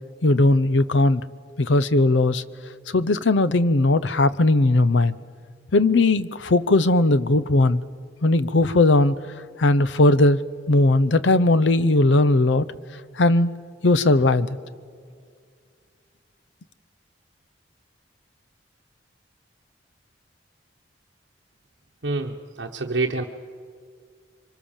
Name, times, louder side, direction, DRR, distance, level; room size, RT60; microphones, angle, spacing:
voice 1, 0.2-1.2 1.6-2.4 2.9-5.1 5.7-7.8 8.2-9.1 9.6-10.4 10.7-12.6 13.2-14.6, left 2 dB, 90° left, 16 dB, 0.7 m, -18 dB
voice 2, 22.0-23.2, right 3 dB, 70° right, 1 dB, 1.0 m, -27 dB
25.0 x 24.0 x 7.3 m, 2.1 s
head